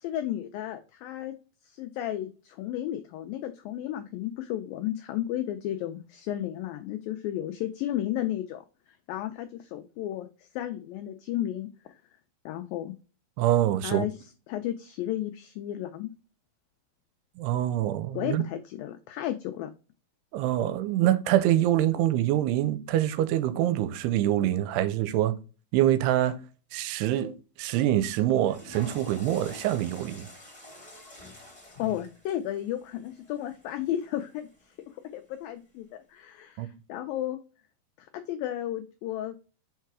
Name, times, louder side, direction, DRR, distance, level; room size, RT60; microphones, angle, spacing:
voice 1, 0.0-1.3 1.7-8.6 9.1-11.7 12.5-12.9 13.8-14.1 14.5-16.1 18.1-19.7 31.8-34.5 35.1-37.4 38.0-39.4, left 12 dB, 90° left, 2.0 m, -33 dB
voice 2, 13.4-14.1 17.4-18.4 20.3-25.4 25.7-26.4 26.7-30.3 36.6-36.7, right 13 dB, 85° right, 2.6 m, -25 dB
Water / Toilet flush, 28.3-34.5, left 2 dB, 25° left, 0.9 m, -47 dB
5.7 x 4.6 x 4.7 m
omnidirectional pair, 4.8 m